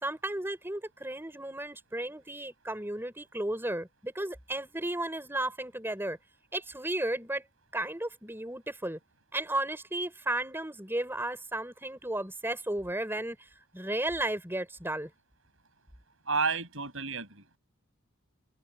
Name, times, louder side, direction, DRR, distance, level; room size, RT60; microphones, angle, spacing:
voice 1, 0.0-6.2 6.5-7.4 7.7-9.0 9.3-15.1, right 1 dB, 10° right, 4.1 m, -34 dB
voice 2, 16.2-17.6, right 4 dB, 70° right, 6.8 m, -31 dB
head